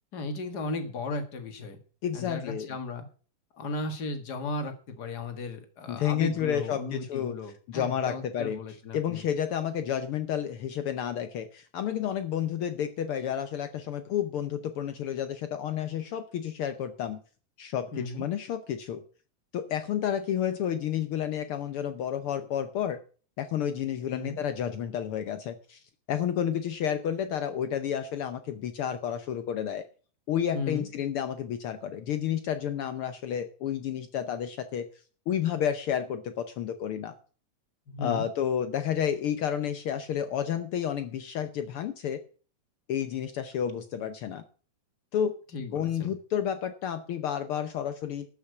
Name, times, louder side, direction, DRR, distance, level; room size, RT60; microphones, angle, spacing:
voice 1, 0.1-1.8 2.1-3.1 3.5-9.2 17.9-18.3 24.1-24.4 30.5-30.9 37.9-38.3 45.5-46.1, left 3 dB, 40° left, 7 dB, 2.0 m, -35 dB
voice 2, 2.0-2.7 5.9-7.4 7.7-8.6 8.9-17.2 17.6-19.0 19.5-23.0 23.4-25.8 26.1-29.8 30.3-34.8 35.3-37.1 38.0-42.2 42.9-44.4 45.1-45.3 45.7-48.3, left 9 dB, 70° left, 10 dB, 1.3 m, -30 dB
13.0 x 6.0 x 8.0 m, 0.40 s
omnidirectional pair, 3.3 m